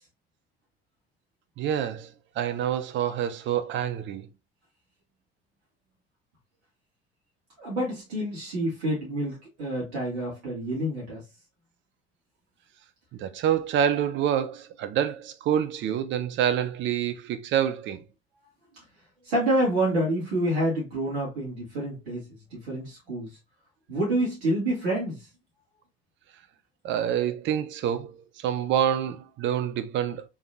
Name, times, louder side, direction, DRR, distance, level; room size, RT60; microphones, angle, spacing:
voice 1, 1.6-2.1 2.4-4.3 13.1-18.0 26.8-30.3, right 9 dB, 40° right, 0.6 m, -27 dB
voice 2, 7.6-11.2 19.3-23.3 23.9-25.2, right 1 dB, 60° right, 2.0 m, -28 dB
3.5 x 3.4 x 2.6 m
figure-of-eight pair, 60°, 31 cm